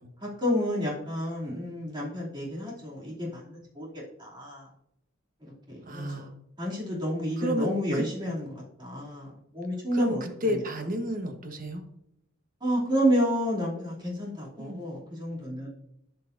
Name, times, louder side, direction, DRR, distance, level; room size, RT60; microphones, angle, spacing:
voice 1, 0.2-3.9 4.2-4.7 5.4-6.2 6.6-9.3 9.5-10.2 10.5-10.6 12.6-15.7, equal, 25° right, -5 dB, 2.8 m, -30 dB
voice 2, 5.8-6.3 7.4-8.0 9.9-11.8 14.6-14.8, equal, 45° right, 5 dB, 1.2 m, -31 dB
13.5 x 5.5 x 2.6 m, 0.80 s
head